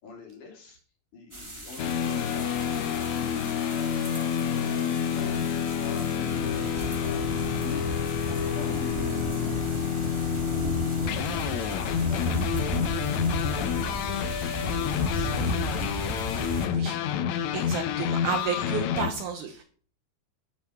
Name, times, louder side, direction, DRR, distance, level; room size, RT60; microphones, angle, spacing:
voice 1, 0.0-0.8 1.1-3.3 3.7-5.4 5.8-7.8 8.1-9.0 9.3-12.5 12.9-14.3 14.7-15.7, left 4 dB, 55° left, 1 dB, 4.5 m, -45 dB
sound 1, 1.3-16.7, right 1 dB, 15° right, 1.1 m, -34 dB
sound 2, 1.8-19.1, left 8 dB, 75° left, 1.7 m, -28 dB
voice 2, 16.5-17.0 17.5-19.6, right 6 dB, 70° right, 7 dB, 2.1 m, -32 dB
9.7 x 9.1 x 5.8 m, 0.44 s
omnidirectional pair, 4.3 m